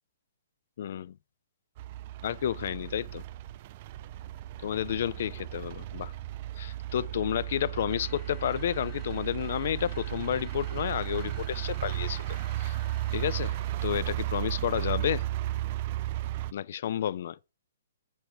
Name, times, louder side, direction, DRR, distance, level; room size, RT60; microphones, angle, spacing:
voice 1, 0.8-1.1 2.2-3.2 4.6-6.1 6.6-12.8 13.1-13.5 13.8-15.2 16.5-17.4, left 10 dB, 60° left, 0.3 m, -31 dB
sound 1, 1.8-16.5, right 15 dB, 45° right, 0.3 m, -34 dB
sound 2, 7.9-14.1, left 10 dB, 25° left, 0.9 m, -55 dB
7.5 x 4.4 x 4.7 m
hypercardioid pair, 135°, 0 cm